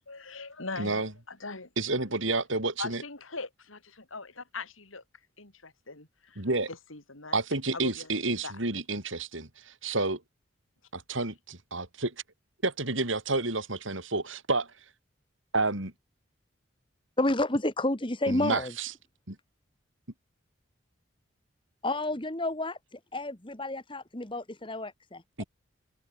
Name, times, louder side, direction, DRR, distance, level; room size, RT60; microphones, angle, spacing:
voice 1, 0.0-1.7 2.8-5.0 5.4-7.4 7.7-8.1 8.4-8.6, left 3 dB, 85° left, 4.4 m, -41 dB
voice 2, 0.8-1.1 1.8-3.0 6.4-6.7 7.3-10.2 10.9-12.1 12.6-14.7 15.5-15.9 18.3-18.9 19.3-19.4 25.4-25.5, right 3 dB, 75° right, 4.8 m, -30 dB
voice 3, 17.2-18.7 21.8-25.4, left 1 dB, 25° left, 1.7 m, -30 dB
head